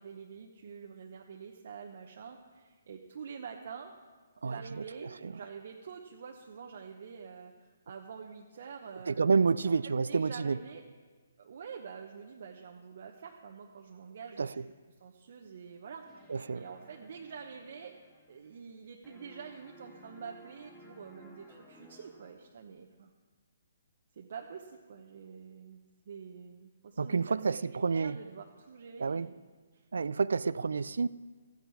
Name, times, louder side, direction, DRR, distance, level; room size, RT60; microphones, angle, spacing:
voice 1, 0.0-3.9 4.4-9.1 9.6-10.8 11.4-14.7 15.0-18.0 18.3-23.1 24.1-29.3 29.7-29.9, right 6 dB, 55° right, 2 dB, 1.0 m, -47 dB
voice 2, 4.4-5.3 9.1-10.6 14.4-14.6 16.3-16.6 27.0-28.2 29.0-29.3 29.9-31.1, right 5 dB, 75° right, 18 dB, 0.4 m, -29 dB
sound 1, 16.0-18.8 19.0-22.6, equal, 15° left, 2.9 m, -57 dB
14.5 x 9.3 x 4.8 m, 1.4 s
hypercardioid pair, 140°, 0 cm